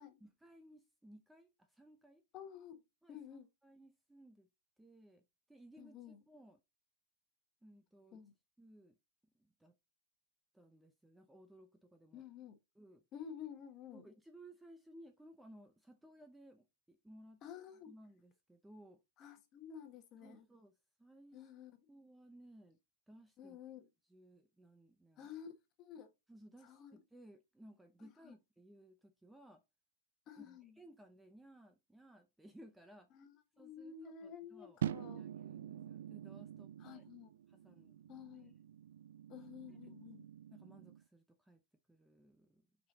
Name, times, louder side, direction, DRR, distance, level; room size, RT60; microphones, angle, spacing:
voice 1, 0.2-2.2 3.0-3.2 3.6-4.5 4.8-5.2 5.5-6.6 7.6-8.2 8.6-9.0 9.4-9.7 10.5-12.2 12.8-13.0 13.9-17.4 17.9-19.0 20.2-20.7 21.0-21.4 21.9-22.8 23.1-23.6 24.1-25.3 26.3-29.6 30.4-33.1 33.6-34.8 35.2-37.0 37.5-38.0 40.5-41.6 41.9-42.7, right 1 dB, 5° right, 0.6 m, -60 dB
voice 2, 2.3-2.8 3.1-3.5 5.8-6.2 8.1-8.3 12.1-12.6 13.1-14.1 17.4-17.9 19.2-20.5 21.3-21.9 23.4-23.9 25.2-25.5 25.8-26.1 26.6-27.0 28.0-28.3 30.3-30.8 33.1-35.2 36.8-37.3 38.1-38.5 39.3-40.3, left 8 dB, 30° left, 1.4 m, -52 dB
sound 1, 34.8-41.0, right 10 dB, 75° right, 0.4 m, -46 dB
6.6 x 5.2 x 2.8 m
hypercardioid pair, 140°, 0 cm